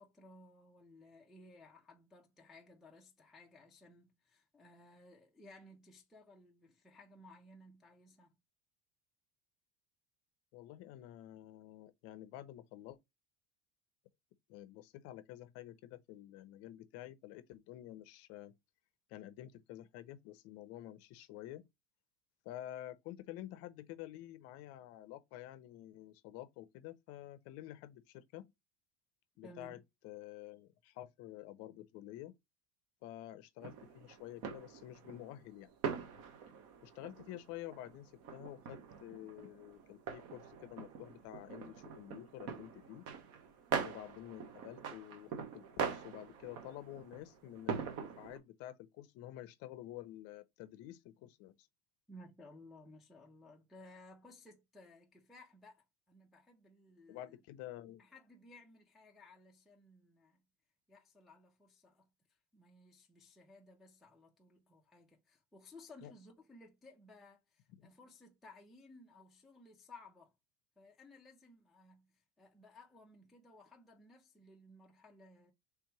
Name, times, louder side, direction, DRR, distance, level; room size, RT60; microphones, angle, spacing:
voice 1, 0.0-8.4 29.4-29.8 52.1-57.4 58.0-60.4 60.9-62.1 62.5-70.3 70.8-75.5, left 2 dB, ahead, 0.3 m, -59 dB
voice 2, 10.5-13.0 14.5-18.6 19.1-21.7 22.4-28.5 29.4-29.8 30.0-32.3 33.0-35.7 36.8-43.0 43.8-51.7 57.1-58.0 66.0-66.1 67.8-67.9, left 13 dB, 45° left, 0.5 m, -50 dB
sound 1, 33.6-48.4, right 6 dB, 50° right, 0.9 m, -43 dB
3.4 x 2.8 x 4.5 m
cardioid pair, 165°, 33 cm